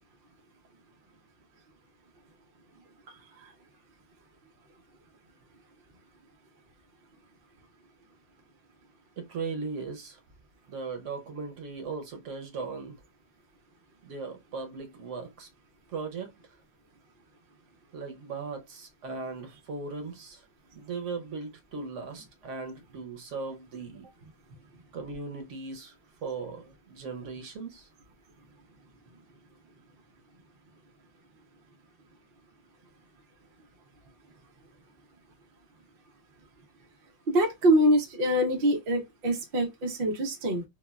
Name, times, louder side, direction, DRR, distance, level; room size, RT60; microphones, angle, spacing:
voice 1, 9.2-10.2 10.7-13.0 14.0-15.5 15.9-16.3 17.9-20.4 20.8-24.1 24.9-25.9 26.2-27.9, right 4 dB, 60° right, 0.8 m, -38 dB
voice 2, 37.3-40.6, right 1 dB, 85° right, 0.4 m, -25 dB
3.3 x 2.2 x 2.2 m
omnidirectional pair, 1.9 m